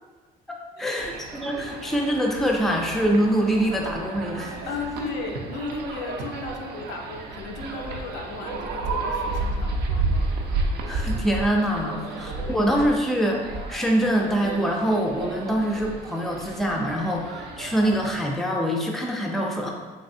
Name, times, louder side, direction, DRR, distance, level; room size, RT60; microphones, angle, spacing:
voice 1, 0.5-4.6 10.9-13.4 13.7-19.7, equal, ahead, 0 dB, 0.4 m, -24 dB
sound 1, 1.0-18.2, right 3 dB, 75° right, 0.5 m, -32 dB
voice 2, 4.7-10.4 11.8-12.6, left 3 dB, 90° left, 2 dB, 0.5 m, -35 dB
3.2 x 2.9 x 2.6 m, 1.3 s
cardioid pair, 110°, 17 cm